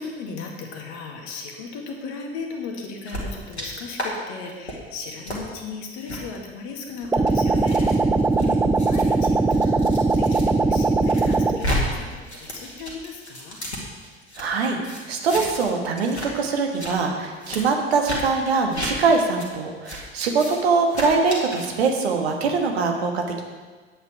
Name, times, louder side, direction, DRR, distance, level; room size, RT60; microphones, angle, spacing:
voice 1, 0.0-8.0 8.8-13.6, left 4 dB, 55° left, 1 dB, 1.9 m, -36 dB
sound 1, 3.1-3.7 3.9-4.1 4.5-4.7 5.2-5.4 6.0-6.2 6.9-10.4 10.8-11.8 12.1-14.4 14.8-15.7 15.9-16.3 16.6-16.9 17.4-17.6 18.0-18.2 18.7-18.9 19.4-19.5 19.8-20.0 20.3-20.6 20.9-21.7, left 1 dB, 85° left, 2.0 m, -32 dB
sound 2, 7.1-11.6, right 3 dB, 5° right, 0.5 m, -20 dB
voice 2, 8.3-8.6 14.4-14.8 15.1-23.4, right 4 dB, 70° right, 3 dB, 1.4 m, -23 dB
9.7 x 8.7 x 4.8 m, 1.4 s
figure-of-eight pair, 65°, 32 cm